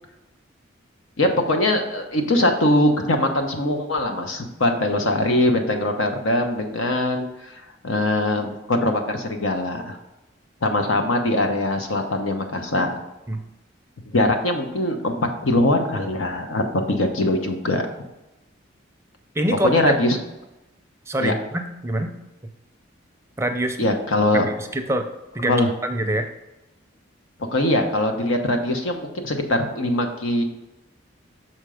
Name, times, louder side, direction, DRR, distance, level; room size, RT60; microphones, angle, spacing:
voice 1, 1.2-10.0 10.6-12.9 14.1-15.2 15.4-17.8 19.6-20.2 21.2-21.3 23.8-24.5 25.4-25.7 27.5-30.4, left 1 dB, 90° left, 4 dB, 1.0 m, -22 dB
voice 2, 19.3-19.9 21.1-22.1 23.4-23.8 24.3-25.1 25.3-25.6 25.8-26.3, right 1 dB, 15° right, 5 dB, 0.5 m, -25 dB
6.5 x 4.4 x 5.0 m, 0.97 s
head